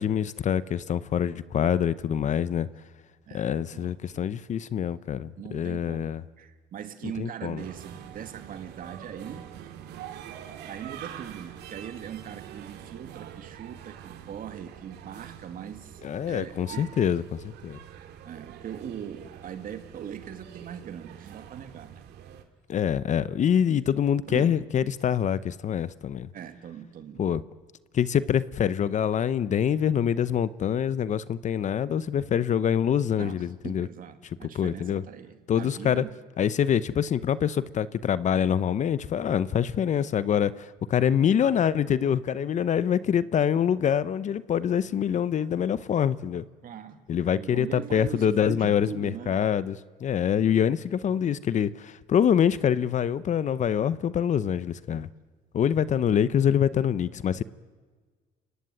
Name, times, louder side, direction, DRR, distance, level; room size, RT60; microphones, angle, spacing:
voice 1, 0.0-2.7 3.3-6.2 7.2-7.6 16.0-17.8 22.7-26.3 27.2-27.4 27.9-33.9 34.5-35.0 35.5-36.0 36.4-46.4 47.1-55.1 55.5-57.4, left 8 dB, 45° left, 17 dB, 0.8 m, -25 dB
voice 2, 3.3-4.3 5.4-9.5 10.5-16.9 18.2-22.0 24.3-24.7 26.3-27.2 33.2-36.2 44.9-45.3 46.6-47.0 47.4-49.5, right 9 dB, 55° right, 8 dB, 2.4 m, -41 dB
sound 1, 7.6-22.4, right 10 dB, 80° right, 2.4 m, -45 dB
29.5 x 16.5 x 9.5 m, 1.5 s
cardioid pair, 110°, 17 cm